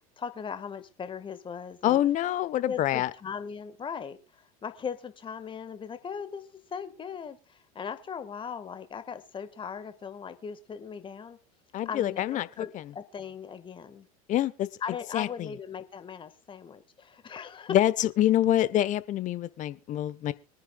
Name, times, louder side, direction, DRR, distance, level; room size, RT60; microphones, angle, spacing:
voice 1, 0.2-2.0 2.7-4.2 4.6-11.4 11.9-14.1 14.8-17.8, left 7 dB, 25° left, 1.7 m, -38 dB
voice 2, 1.8-3.1 11.7-12.9 14.3-14.7 15.1-15.5 17.7-20.3, left 12 dB, 40° left, 1.0 m, -26 dB
25.0 x 9.9 x 2.4 m
hypercardioid pair, 85°, 19 cm